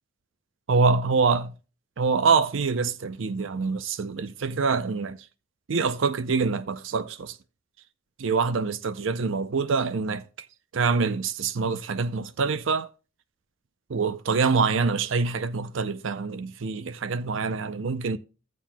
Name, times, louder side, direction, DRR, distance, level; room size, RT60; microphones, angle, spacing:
voice 1, 0.7-1.5 2.0-5.2 5.7-7.4 8.2-10.5 10.7-12.9 13.9-18.2, right 4 dB, 75° right, 0.5 m, -25 dB
16.0 x 7.3 x 2.2 m
head